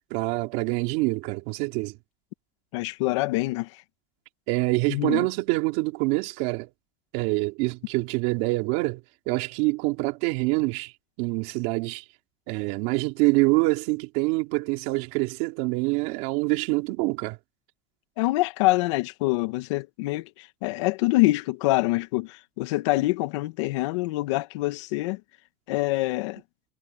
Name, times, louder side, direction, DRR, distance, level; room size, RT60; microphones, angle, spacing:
voice 1, 0.1-2.0 4.5-6.7 7.1-10.9 11.2-12.0 12.5-17.4, right 24 dB, 60° right, 3.6 m, -25 dB
voice 2, 2.7-3.8 4.9-5.3 18.2-25.2 25.7-26.4, left 20 dB, 80° left, 1.4 m, -25 dB
cardioid pair, 165°, 15 cm